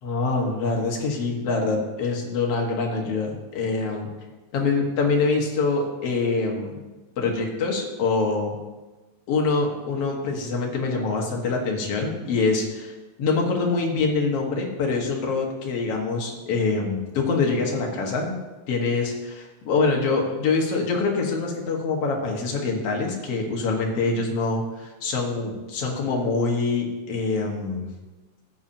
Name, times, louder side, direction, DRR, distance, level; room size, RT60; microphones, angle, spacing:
voice 1, 0.0-4.1 4.5-6.8 7.2-8.6 9.3-12.9 13.2-18.3 18.7-27.9, left 4 dB, 55° left, 0 dB, 2.2 m, -25 dB
14.0 x 8.7 x 2.8 m, 1.2 s
omnidirectional pair, 3.6 m